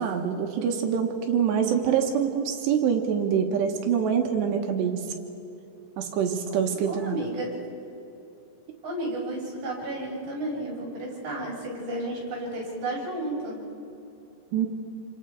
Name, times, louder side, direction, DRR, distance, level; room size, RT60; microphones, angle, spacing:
voice 1, 0.0-5.0 6.0-7.2 14.5-14.7, right 7 dB, 70° right, 3 dB, 3.3 m, -25 dB
voice 2, 6.8-7.5 8.8-13.6, right 1 dB, 40° right, -4 dB, 6.4 m, -32 dB
27.5 x 25.0 x 4.7 m, 2.9 s
omnidirectional pair, 5.4 m